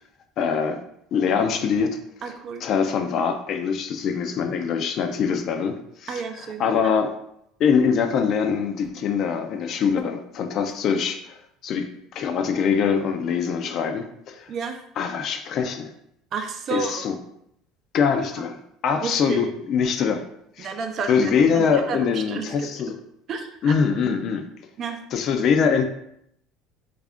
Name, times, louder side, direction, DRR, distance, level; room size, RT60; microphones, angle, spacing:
voice 1, 0.4-0.8 1.1-2.0 2.6-6.2 6.6-7.1 7.6-11.4 11.6-14.5 15.0-15.9 16.7-17.2 17.9-18.6 18.8-20.2 20.6-20.7 21.1-23.0 23.6-24.4 25.1-25.8, left 6 dB, 50° left, 6 dB, 0.4 m, -23 dB
voice 2, 2.2-2.7 6.1-6.9 14.5-14.8 16.3-17.0 18.4-18.5 19.0-19.5 20.6-22.7 23.3-23.8 24.8-25.0, right 5 dB, 45° right, 5 dB, 0.5 m, -31 dB
3.3 x 2.4 x 3.5 m, 0.75 s
supercardioid pair, 110°, 0 cm